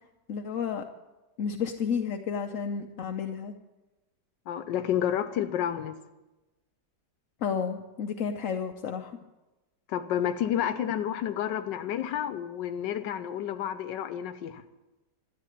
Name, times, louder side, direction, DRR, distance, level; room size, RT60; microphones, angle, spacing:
voice 1, 0.3-0.8 1.4-3.5 7.4-9.2, left 6 dB, 60° left, 4 dB, 0.9 m, -31 dB
voice 2, 4.5-6.0 9.9-14.6, left 10 dB, 90° left, 10 dB, 1.4 m, -30 dB
13.5 x 8.5 x 9.9 m, 1.1 s
omnidirectional pair, 1.9 m